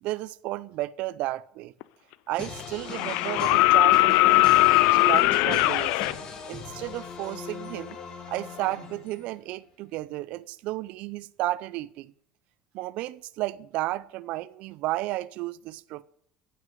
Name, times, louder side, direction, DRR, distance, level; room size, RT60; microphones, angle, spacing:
voice 1, 0.0-1.7 2.3-6.0 6.5-8.0 8.3-12.1 12.7-16.0, right 17 dB, 55° right, 0.6 m, -33 dB
sound 1, 1.8-1.9 2.9-6.1 7.9-8.0, left 19 dB, 75° left, 0.5 m, -20 dB
sound 2, 2.4-9.3, left 5 dB, 35° left, 2.4 m, -39 dB
15.0 x 6.2 x 9.3 m
cardioid pair, 165°, 3 cm